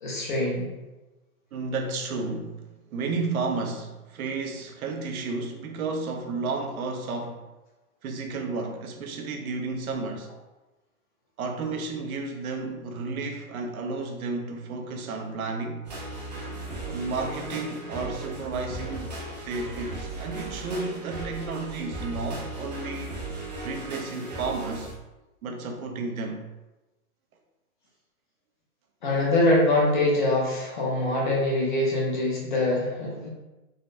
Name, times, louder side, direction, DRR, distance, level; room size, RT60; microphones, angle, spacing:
voice 1, 0.0-0.7 29.0-33.3, left 1 dB, 35° left, -4 dB, 0.6 m, -24 dB
voice 2, 1.5-7.4 8.0-10.3 11.4-15.9 16.8-19.2 19.4-23.1 23.6-24.9 25.4-26.4, right 3 dB, 75° right, 3 dB, 0.7 m, -32 dB
sound 1, 15.8-24.9, right 2 dB, 35° right, 0.4 m, -37 dB
3.9 x 2.1 x 2.5 m, 1.1 s
hypercardioid pair, 175°, 43 cm